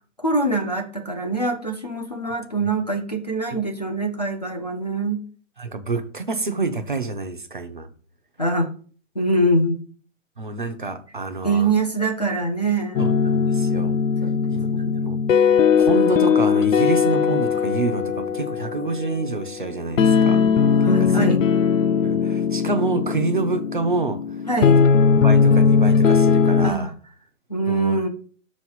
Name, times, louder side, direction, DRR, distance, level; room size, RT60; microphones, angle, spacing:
voice 1, 0.2-5.2 8.4-8.7 9.2-9.8 11.4-13.2 14.2-15.1 20.8-21.4 24.5-24.8 26.6-26.9 27.5-28.1, right 2 dB, 30° left, 4 dB, 0.5 m, -24 dB
voice 2, 5.6-7.9 10.4-11.7 13.0-14.0 14.5-14.7 15.0-15.2 15.8-20.4 20.9-21.3 22.0-24.2 24.7-24.8 25.2-26.9 27.7-28.0, right 3 dB, 40° right, 7 dB, 0.5 m, -27 dB
sound 1, 12.9-26.7, left 6 dB, 75° left, 0.6 m, -19 dB
6.1 x 3.1 x 5.5 m, 0.42 s
hypercardioid pair, 180°, 40 cm